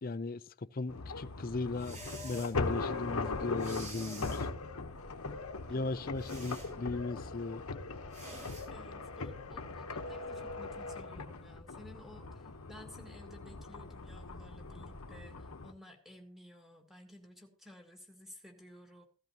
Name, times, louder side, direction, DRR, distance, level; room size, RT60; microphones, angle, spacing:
voice 1, 0.0-2.0 2.2-4.5 5.7-7.6, left 3 dB, 40° left, 0.5 m, -37 dB
sound 1, 0.9-15.7, left 3 dB, 90° left, 1.1 m, -40 dB
sound 2, 1.8-2.5 3.6-4.4 6.2-6.7 8.1-8.6, right 1 dB, 35° right, 7.4 m, -47 dB
voice 2, 8.7-19.0, left 1 dB, ahead, 2.3 m, -55 dB
16.5 x 13.5 x 2.9 m
head